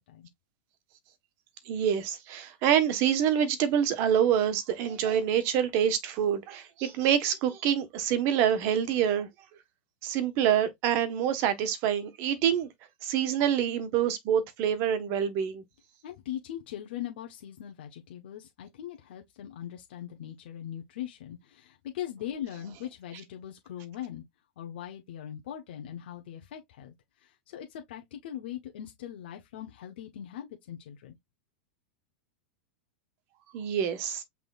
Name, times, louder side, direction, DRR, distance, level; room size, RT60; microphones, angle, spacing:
voice 1, 1.7-9.3 10.0-12.7 13.0-15.6 33.5-34.2, right 9 dB, 45° right, 1.2 m, -26 dB
voice 2, 16.0-24.2 24.6-26.9 27.2-31.1, left 11 dB, 70° left, 1.0 m, -40 dB
5.9 x 3.5 x 2.4 m
supercardioid pair, 130°, 6 cm